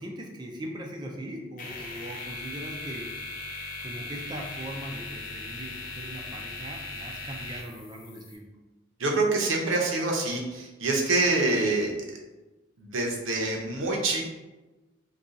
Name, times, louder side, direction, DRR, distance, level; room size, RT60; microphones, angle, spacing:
voice 1, 0.0-3.2 3.8-8.5, right 1 dB, 20° right, 1 dB, 0.3 m, -40 dB
sound 1, 1.6-8.4, left 3 dB, 45° left, 0.5 m, -39 dB
voice 2, 9.0-11.9 12.8-14.3, right 2 dB, 70° right, 0 dB, 0.6 m, -26 dB
2.4 x 2.3 x 3.9 m, 1.1 s
head